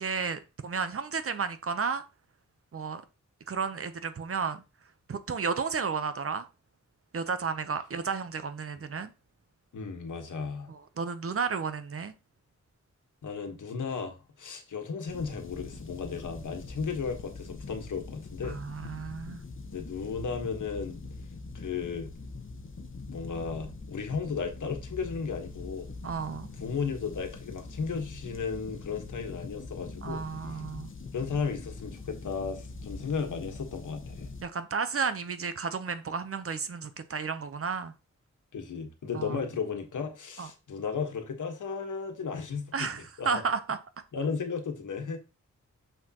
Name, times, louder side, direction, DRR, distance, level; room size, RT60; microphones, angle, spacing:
voice 1, 0.0-2.0 2.7-3.0 3.5-4.6 5.1-6.5 7.1-9.1 10.7-12.1 18.4-19.4 26.0-26.5 30.0-30.9 34.4-37.9 39.1-39.4 40.4-40.5 42.7-43.8, right 5 dB, 50° right, 0.7 m, -32 dB
voice 2, 9.7-10.7 13.2-18.6 19.7-21.0 21.5-22.1 23.1-25.9 26.6-30.3 30.5-30.6 31.1-34.3 38.5-42.9 43.2-43.4 44.1-45.2, left 5 dB, 80° left, 1.4 m, -34 dB
sound 1, 15.1-34.4, left 3 dB, 40° left, 1.1 m, -43 dB
6.7 x 6.2 x 2.9 m
wide cardioid pair, 135°, 30 cm